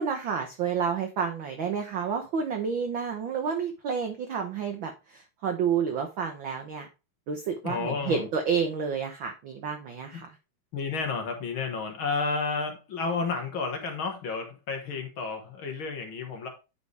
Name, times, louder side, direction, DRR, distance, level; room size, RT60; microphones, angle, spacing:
voice 1, 0.0-6.9 7.3-10.3, right 6 dB, 90° right, 5 dB, 1.0 m, -30 dB
voice 2, 7.6-8.3 10.1-10.2 10.7-16.5, left 4 dB, 55° left, 4 dB, 1.8 m, -31 dB
9.5 x 4.8 x 3.2 m, 0.29 s
omnidirectional pair, 3.4 m